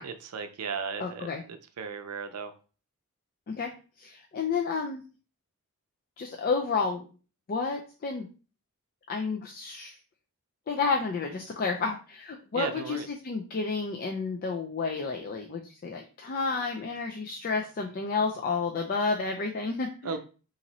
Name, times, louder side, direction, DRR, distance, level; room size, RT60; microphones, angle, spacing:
voice 1, 0.0-2.5 12.5-13.1 20.0-20.2, right 5 dB, 80° right, 9 dB, 0.5 m, -36 dB
voice 2, 1.0-1.4 3.5-3.7 4.0-5.0 6.2-7.1 7.5-8.3 9.1-10.0 10.7-20.2, left 4 dB, 40° left, 2 dB, 0.3 m, -31 dB
2.9 x 2.6 x 4.0 m, 0.36 s
head